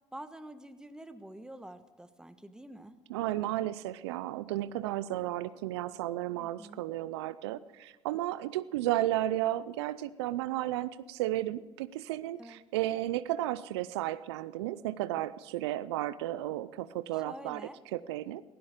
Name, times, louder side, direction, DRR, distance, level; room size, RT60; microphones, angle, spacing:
voice 1, 0.1-3.0 6.3-6.8 12.4-12.6 17.1-17.8, right 1 dB, 5° right, 10 dB, 1.3 m, -47 dB
voice 2, 3.1-17.6 17.9-18.4, right 14 dB, 80° right, 16 dB, 0.5 m, -33 dB
17.0 x 15.5 x 5.1 m, 1.2 s
hypercardioid pair, 65°, 14 cm